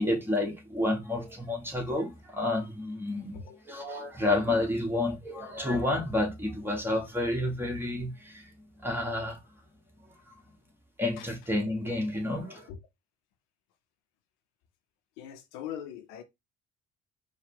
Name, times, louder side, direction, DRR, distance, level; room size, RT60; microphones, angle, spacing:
voice 1, 0.0-8.5 8.8-9.4 11.0-12.7, left 1 dB, 5° right, 1.6 m, -30 dB
voice 2, 15.2-16.2, left 9 dB, 65° left, 0.7 m, -41 dB
4.4 x 2.4 x 3.4 m
figure-of-eight pair, 45°, 35 cm